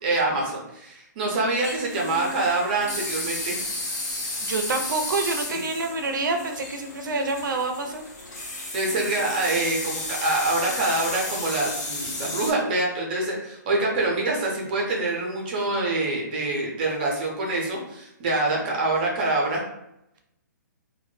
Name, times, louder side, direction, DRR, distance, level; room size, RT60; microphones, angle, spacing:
voice 1, 0.0-3.6 5.5-5.6 7.1-7.2 8.4-19.6, right 2 dB, 30° right, -2 dB, 0.5 m, -25 dB
sound 1, 1.6-12.5, left 2 dB, 65° left, 1.0 m, -33 dB
voice 2, 4.4-8.0, right 3 dB, 90° right, 4 dB, 0.4 m, -27 dB
2.1 x 2.0 x 3.0 m, 0.81 s
hypercardioid pair, 170°, 10 cm